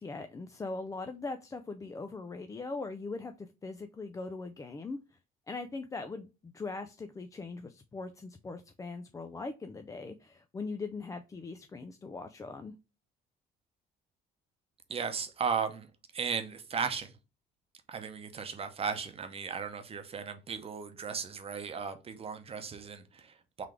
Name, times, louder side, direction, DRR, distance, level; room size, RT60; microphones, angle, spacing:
voice 1, 0.0-5.0 5.5-12.8, left 3 dB, 20° left, 0.4 m, -40 dB
voice 2, 14.9-15.9 16.1-17.1 17.9-23.7, right 6 dB, 35° right, 0.8 m, -36 dB
3.7 x 3.2 x 3.3 m
cardioid pair, 110°, 17 cm